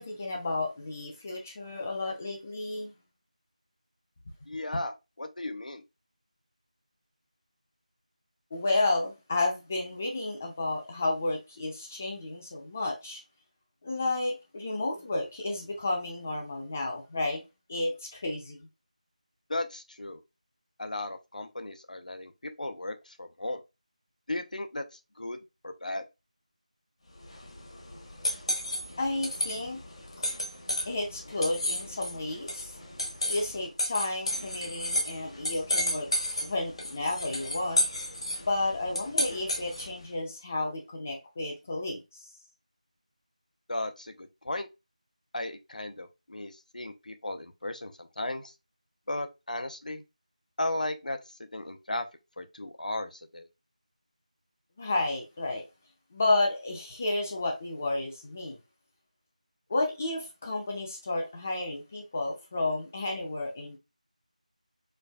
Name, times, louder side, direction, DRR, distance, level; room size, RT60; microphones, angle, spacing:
voice 1, 0.0-2.9 8.5-13.2 13.8-17.4 17.7-18.6 29.0-29.8 30.9-32.7 33.3-36.1 36.4-37.9 38.4-42.0 54.8-55.6 56.1-58.6 59.7-63.8, left 2 dB, 15° left, 0.5 m, -31 dB
voice 2, 4.5-5.8 19.5-20.2 20.8-23.6 24.3-25.4 25.6-26.0 43.7-44.7 45.3-48.5 49.1-50.0 50.6-51.2 51.5-52.0 52.4-53.5, left 2 dB, 80° left, 0.7 m, -35 dB
sound 1, 27.2-40.0, left 1 dB, 50° left, 0.9 m, -33 dB
4.5 x 2.5 x 2.3 m
figure-of-eight pair, 175°, 4 cm